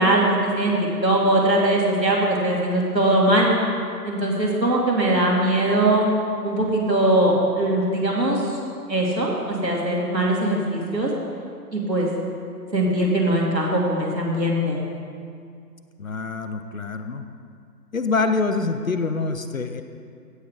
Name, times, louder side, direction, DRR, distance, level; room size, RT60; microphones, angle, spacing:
voice 1, 0.0-3.5 4.0-6.1 6.4-8.4 8.9-11.1 11.7-12.1 12.7-14.8, right 1 dB, 80° right, -2 dB, 2.4 m, -21 dB
voice 2, 16.0-17.3 17.9-19.8, left 4 dB, 55° left, 8 dB, 0.6 m, -25 dB
16.0 x 6.6 x 3.8 m, 2.3 s
figure-of-eight pair, 150°, 50 cm